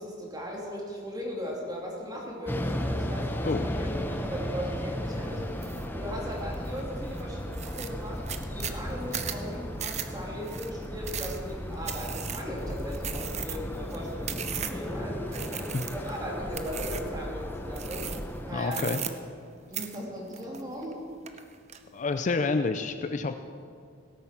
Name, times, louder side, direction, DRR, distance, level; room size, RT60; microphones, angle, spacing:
voice 1, 0.0-5.5 5.9-18.1 18.4-19.0 19.7-21.0, equal, 20° right, -3 dB, 2.8 m, -38 dB
sound 1, 2.5-18.5, equal, 10° left, 0.8 m, -35 dB
sound 2, 5.6-5.9 6.3-6.8 7.2-7.3 7.5-14.9 15.3-16.2 16.5-17.2 17.7-18.4 18.7-19.5 19.7-20.9 21.3-21.8, right 9 dB, 35° right, 0.7 m, -37 dB
voice 2, 18.5-19.0 21.9-23.3, left 3 dB, 40° left, 8 dB, 0.5 m, -28 dB
17.0 x 8.8 x 5.9 m, 2.2 s
head